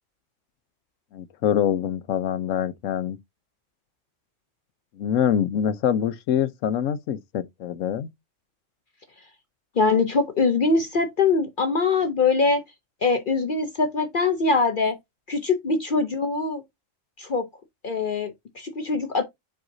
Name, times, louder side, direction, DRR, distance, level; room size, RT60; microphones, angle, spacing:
voice 1, 1.1-3.2 5.0-8.1, left 9 dB, 85° left, 1.1 m, -25 dB
voice 2, 9.8-12.6 13.0-15.0 15.3-16.6 17.2-17.5 17.8-19.2, left 4 dB, 50° left, 0.8 m, -23 dB
7.8 x 4.7 x 2.6 m
omnidirectional pair, 1.3 m